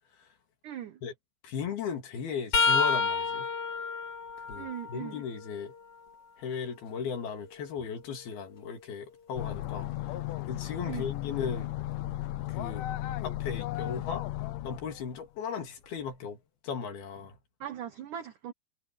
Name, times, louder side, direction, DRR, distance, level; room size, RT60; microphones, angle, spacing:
voice 1, 0.6-1.0 4.5-5.2 10.8-11.1 17.6-18.5, right 10 dB, 80° right, 1.8 m, -39 dB
voice 2, 1.4-3.5 4.5-5.7 6.4-9.9 10.5-11.7 12.5-12.9 13.2-14.3 14.6-16.4 16.6-17.4, left 6 dB, 60° left, 4.0 m, -36 dB
sound 1, 2.5-6.3 6.8-8.8 11.7-11.9 13.1-13.3 14.6-14.7, left 4 dB, 40° left, 3.0 m, -32 dB
sound 2, 9.3-15.2, left 15 dB, 85° left, 1.9 m, -35 dB
omnidirectional pair, 5.2 m